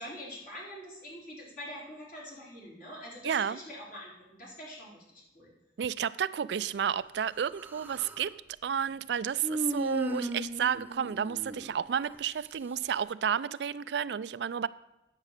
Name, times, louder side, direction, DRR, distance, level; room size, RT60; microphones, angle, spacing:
voice 1, 0.0-5.5, equal, 50° left, -4 dB, 3.9 m, -45 dB
voice 2, 3.2-3.6 5.8-8.3 8.6-14.7, right 8 dB, 70° right, 16 dB, 0.4 m, -31 dB
Human voice, 7.3-8.3 9.4-12.2, equal, 10° right, 0.7 m, -36 dB
9.8 x 7.3 x 6.6 m, 0.97 s
head